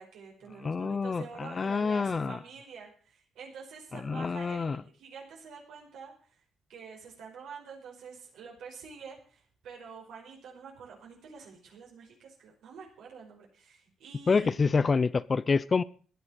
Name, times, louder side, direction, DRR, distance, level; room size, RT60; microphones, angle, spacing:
voice 1, 0.0-6.4 6.7-14.5, right 5 dB, 80° right, 5.1 m, -47 dB
voice 2, 0.6-2.4 3.9-4.8 14.3-15.8, left 4 dB, 35° left, 0.7 m, -27 dB
16.0 x 10.5 x 6.5 m
cardioid pair, 90°, 0 cm